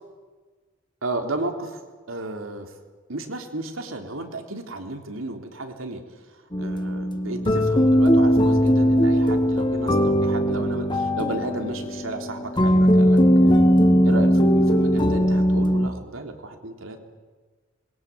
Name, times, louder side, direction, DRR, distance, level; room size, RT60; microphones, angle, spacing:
voice 1, 1.0-1.8 2.1-2.7 3.1-6.0 6.3-13.6 14.0-17.0, right 2 dB, 85° right, 4 dB, 3.5 m, -33 dB
sound 1, 6.5-15.9, equal, 25° left, 1.7 m, -19 dB
26.5 x 22.0 x 9.2 m, 1.4 s
head